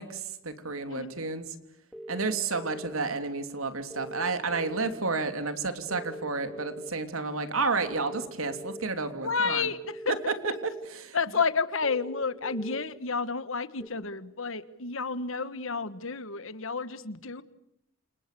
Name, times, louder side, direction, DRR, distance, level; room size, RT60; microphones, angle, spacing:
voice 1, 0.0-1.5 2.1-9.7 10.6-11.2, right 3 dB, 80° right, 8 dB, 3.2 m, -31 dB
sound 1, 1.9-2.9 3.9-4.9 5.9-6.9 7.9-8.9 9.8-10.9 11.8-12.8 13.8-13.9, equal, ahead, 3.3 m, -41 dB
voice 2, 9.1-9.8 10.0-10.3 11.1-17.4, left 5 dB, 65° left, 14 dB, 1.5 m, -30 dB
29.0 x 28.0 x 6.9 m, 0.78 s
head